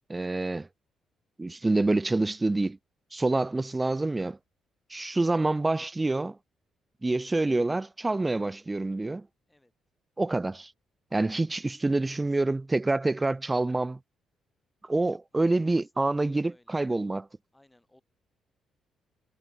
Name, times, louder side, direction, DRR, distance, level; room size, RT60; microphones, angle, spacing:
voice 1, 0.1-0.7 1.4-2.8 3.1-4.4 4.9-6.4 7.0-9.3 10.2-10.7 11.1-14.0 14.8-17.2, right 2 dB, 20° right, 0.3 m, -27 dB
voice 2, 11.7-12.6 13.2-13.4 14.9-16.9 17.5-18.0, left 1 dB, 10° left, 6.3 m, -62 dB
cardioid pair, 90°, 0 cm